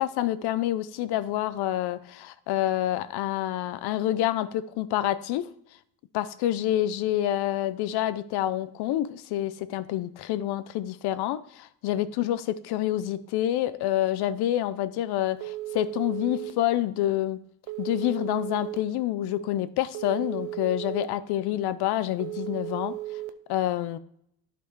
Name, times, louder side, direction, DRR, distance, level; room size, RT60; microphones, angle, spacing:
voice 1, 0.0-5.5 6.1-17.4 17.8-22.9 23.5-24.0, left 13 dB, 70° left, 0.7 m, -27 dB
Telephone, 15.4-16.5 17.7-18.8 19.9-21.0 22.2-23.3, right 16 dB, 80° right, 0.7 m, -35 dB
11.0 x 4.5 x 4.6 m
cardioid pair, 110°, 40 cm